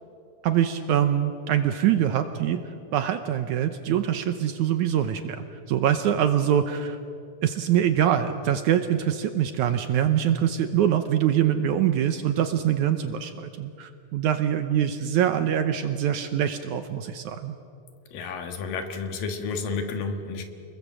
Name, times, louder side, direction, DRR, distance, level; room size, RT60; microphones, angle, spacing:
voice 1, 0.4-2.6 2.9-7.0 7.4-17.6, right 10 dB, 75° right, 9 dB, 1.9 m, -24 dB
voice 2, 18.1-20.4, left 4 dB, 70° left, 6 dB, 3.2 m, -31 dB
28.0 x 21.0 x 7.4 m, 2.5 s
omnidirectional pair, 4.2 m